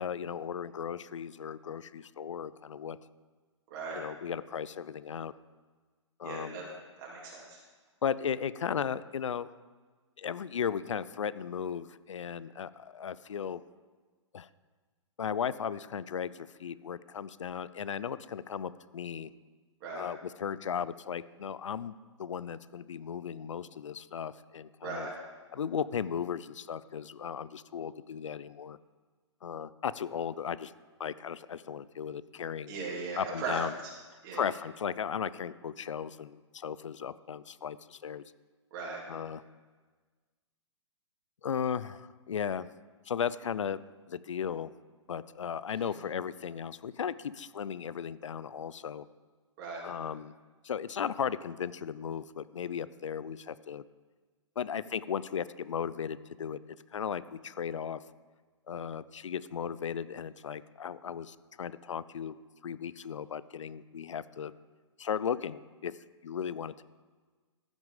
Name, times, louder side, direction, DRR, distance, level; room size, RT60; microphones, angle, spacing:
voice 1, 0.0-3.0 3.9-5.3 6.2-6.7 8.0-9.5 10.2-13.6 14.3-14.5 15.2-19.3 20.0-21.9 22.2-25.1 25.5-28.8 29.4-30.7 31.0-32.8 33.2-33.7 34.3-38.2 39.1-39.4 41.4-42.7 43.1-43.8 44.1-44.7 45.1-49.0 49.8-50.3 50.6-53.8 54.6-58.0 58.7-62.4 62.6-64.5 65.0-65.9 66.2-66.8, left 7 dB, 75° left, 17 dB, 0.5 m, -36 dB
voice 2, 6.2-6.6 7.0-7.6 19.8-20.0 24.8-25.1 32.7-33.6 34.2-34.4 38.7-39.0 49.6-49.8, right 3 dB, 45° right, -4 dB, 3.4 m, -38 dB
14.0 x 6.3 x 5.1 m, 1.4 s
hypercardioid pair, 125°, 16 cm